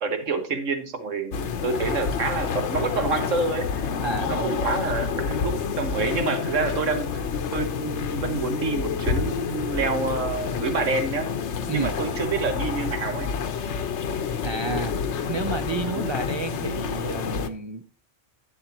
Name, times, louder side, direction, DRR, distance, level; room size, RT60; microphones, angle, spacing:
voice 1, 0.0-3.9 4.2-7.3 7.5-11.3 11.7-13.3 16.0-16.1, right 4 dB, 80° right, 7 dB, 1.6 m, -28 dB
sound 1, 1.3-17.5, left 6 dB, 70° left, 1.0 m, -28 dB
voice 2, 4.0-4.5 11.7-11.9 14.4-15.0 15.3-17.8, right 3 dB, 40° right, 7 dB, 0.4 m, -30 dB
11.5 x 8.1 x 2.9 m, 0.37 s
omnidirectional pair, 1.3 m